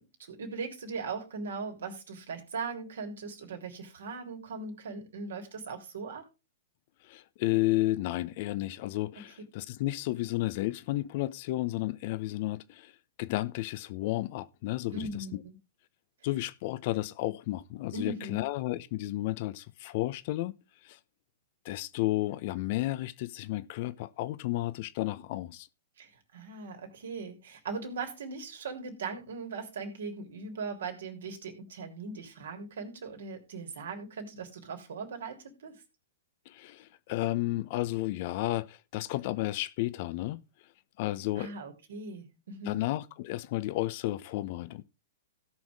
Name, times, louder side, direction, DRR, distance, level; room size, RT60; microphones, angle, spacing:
voice 1, 0.0-6.2 14.9-15.5 17.9-18.4 26.0-35.8 41.4-42.8, right 4 dB, 70° right, 3.5 m, -39 dB
voice 2, 7.0-12.9 13.2-15.0 15.3-15.4 16.2-20.5 20.8-21.0 21.6-25.7 36.5-40.4 41.0-41.5 42.6-44.8, left 17 dB, 50° left, 0.8 m, -32 dB
17.0 x 6.2 x 3.6 m
figure-of-eight pair, 110°, 0 cm